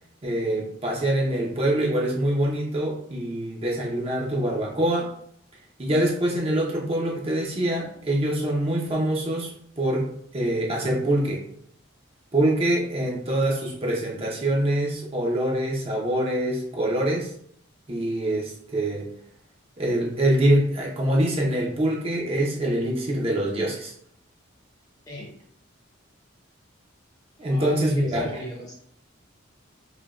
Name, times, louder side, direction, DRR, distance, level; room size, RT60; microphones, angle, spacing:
voice 1, 0.2-5.1 5.8-11.4 12.3-17.3 17.9-19.1 19.8-23.9 27.4-28.3, right 1 dB, 30° right, -2 dB, 0.6 m, -24 dB
voice 2, 25.1-25.4 27.5-28.7, equal, 20° left, -2 dB, 0.8 m, -37 dB
4.9 x 2.2 x 2.4 m, 0.65 s
head